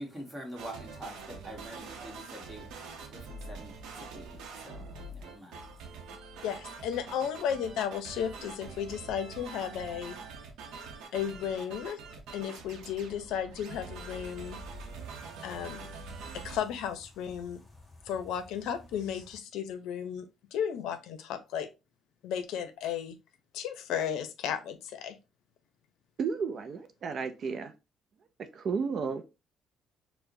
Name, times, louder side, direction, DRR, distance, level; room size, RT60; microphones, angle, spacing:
voice 1, 0.0-6.1, right 1 dB, 10° right, 1.3 m, -46 dB
sound 1, 0.6-16.6, right 4 dB, 90° right, 0.7 m, -44 dB
voice 2, 6.4-10.2 11.1-12.0 12.3-14.6 15.4-15.9 16.4-17.6 18.1-21.7 22.2-23.2 23.5-25.2, left 8 dB, 85° left, 0.5 m, -34 dB
sound 2, 14.3-19.4, left 2 dB, 10° left, 0.8 m, -54 dB
voice 3, 26.2-27.7 28.5-29.2, right 5 dB, 45° right, 0.4 m, -32 dB
4.7 x 2.1 x 2.6 m
cardioid pair, 130°, 0 cm